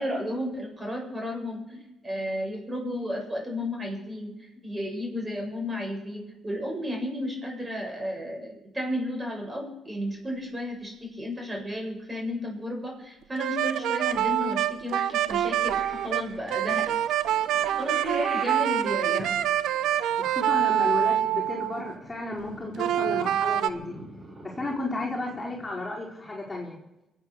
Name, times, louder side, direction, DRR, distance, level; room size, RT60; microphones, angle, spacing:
voice 1, 0.0-16.9 17.8-19.4, equal, 20° right, 0 dB, 7.3 m, -33 dB
sound 1, 13.4-21.9 22.8-23.7, right 11 dB, 85° right, 0.7 m, -26 dB
Purr / Meow, 15.7-25.7, right 1 dB, 40° right, 7.1 m, -46 dB
voice 2, 20.2-23.9 24.4-26.8, left 2 dB, 15° left, -4 dB, 4.6 m, -33 dB
24.0 x 8.5 x 6.7 m, 0.93 s
cardioid pair, 90°, 0 cm